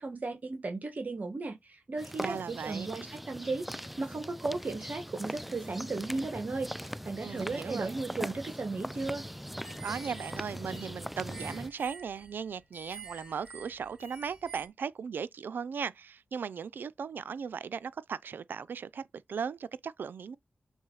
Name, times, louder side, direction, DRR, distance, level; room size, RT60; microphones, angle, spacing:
voice 1, 0.0-9.2, right 3 dB, 55° right, 1.6 m, -35 dB
sound 1, 2.0-11.7, equal, 5° right, 0.5 m, -41 dB
voice 2, 2.2-2.9 7.2-7.9 9.8-20.4, right 6 dB, 80° right, 0.5 m, -37 dB
sound 2, 9.6-14.7, right 4 dB, 25° right, 4.6 m, -49 dB
7.1 x 4.0 x 4.0 m
cardioid pair, 55°, 3 cm